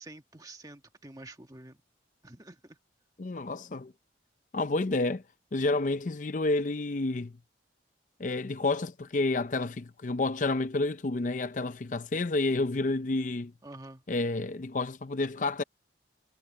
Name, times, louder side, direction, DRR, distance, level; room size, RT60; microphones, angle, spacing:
voice 1, 0.0-1.8 2.2-2.8 13.6-14.0, right 2 dB, 20° right, 1.4 m, -48 dB
voice 2, 3.2-3.9 4.5-5.2 5.5-7.3 8.2-13.5 14.1-15.6, left 2 dB, 40° left, 0.5 m, -29 dB
head